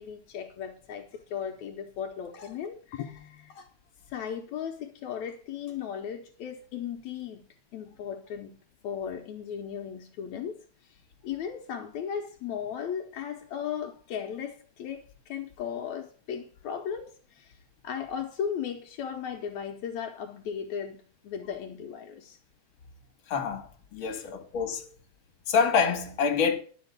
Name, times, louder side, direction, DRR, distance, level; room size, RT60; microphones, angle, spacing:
voice 1, 0.0-3.7 4.1-7.5 7.7-8.6 8.8-10.6 10.8-11.0 11.2-17.6 17.8-22.4 24.0-24.3, left 8 dB, 75° left, 2.1 m, -36 dB
voice 2, 23.3-24.9 25.5-26.6, left 6 dB, 45° left, 2.4 m, -26 dB
11.0 x 6.3 x 8.0 m
omnidirectional pair, 3.3 m